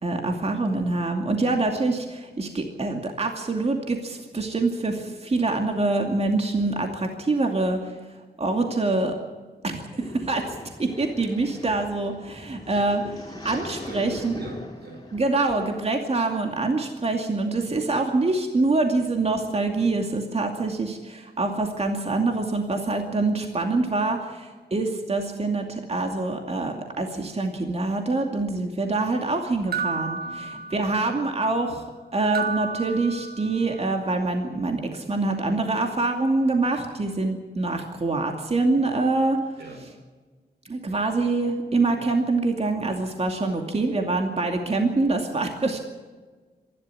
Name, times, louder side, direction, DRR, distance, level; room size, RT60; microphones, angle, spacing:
voice 1, 0.0-7.9 8.4-9.1 9.6-13.0 13.4-14.3 15.1-31.8 32.1-39.4 40.6-45.8, right 3 dB, 40° right, 3 dB, 2.5 m, -25 dB
sound 1, 10.0-15.8, left 2 dB, 25° left, 4.1 m, -41 dB
voice 2, 12.7-13.0 13.6-15.1 30.2-31.0 39.6-39.9, right 2 dB, 90° right, 4 dB, 5.6 m, -43 dB
sound 2, 29.7-31.2 32.3-33.8, right 5 dB, 70° right, 1.6 m, -32 dB
26.0 x 12.0 x 9.7 m, 1.4 s
wide cardioid pair, 105°, 17 cm